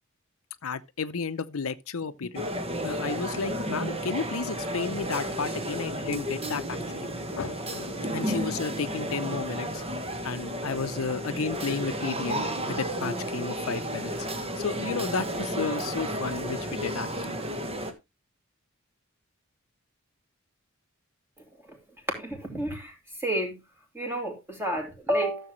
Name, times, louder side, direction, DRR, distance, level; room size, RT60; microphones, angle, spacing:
voice 1, 0.6-2.5 2.8-7.1 7.4-9.8 10.2-14.1 14.4-17.4, left 5 dB, 80° left, 0.7 m, -33 dB
sound 1, 2.3-17.9, equal, 30° right, 1.4 m, -32 dB
voice 2, 22.2-22.9 23.2-23.6 23.9-25.5, right 1 dB, 10° right, 2.8 m, -30 dB
13.5 x 7.0 x 3.1 m
head